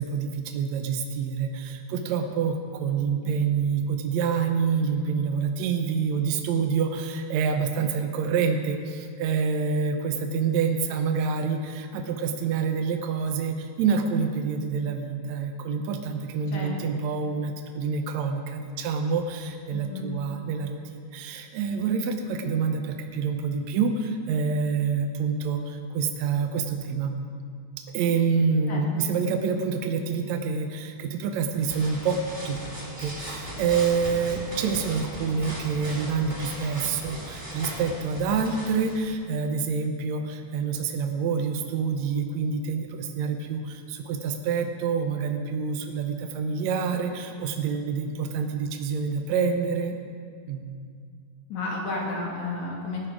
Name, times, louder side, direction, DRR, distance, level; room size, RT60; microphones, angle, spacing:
voice 1, 0.0-27.1 27.9-32.6 33.0-50.0 50.5-50.6, right 5 dB, 75° right, 5 dB, 1.7 m, -27 dB
voice 2, 19.7-20.1 28.7-29.0 51.5-53.1, left 3 dB, 55° left, -2 dB, 3.5 m, -32 dB
sound 1, 31.4-39.1, right 1 dB, 5° right, 3.3 m, -38 dB
18.0 x 9.8 x 5.0 m, 2.2 s
omnidirectional pair, 4.0 m